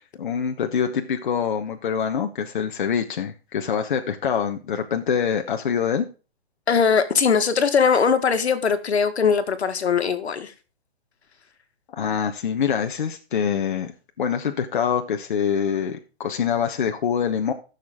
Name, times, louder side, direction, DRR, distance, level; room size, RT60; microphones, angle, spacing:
voice 1, 0.0-6.1 11.9-17.5, left 7 dB, 50° left, 1.1 m, -25 dB
voice 2, 6.7-10.5, left 6 dB, 75° left, 1.8 m, -20 dB
15.0 x 6.8 x 3.6 m
hypercardioid pair, 170°, 33 cm